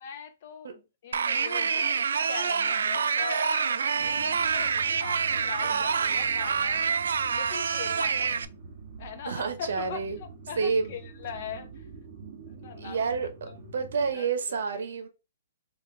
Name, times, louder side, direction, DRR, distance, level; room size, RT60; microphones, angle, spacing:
voice 1, 0.0-7.0 7.3-8.4 9.0-11.8 12.5-13.2 13.5-13.6 14.1-14.9, left 7 dB, 35° left, 0.6 m, -41 dB
sound 1, 1.1-8.4, right 6 dB, 85° right, 0.3 m, -27 dB
sound 2, 4.0-14.1, right 4 dB, 25° right, 0.8 m, -46 dB
voice 2, 9.3-10.2 10.6-10.9 12.8-15.1, right 5 dB, 60° right, 0.8 m, -29 dB
3.9 x 2.5 x 3.2 m
hypercardioid pair, 175°, 0 cm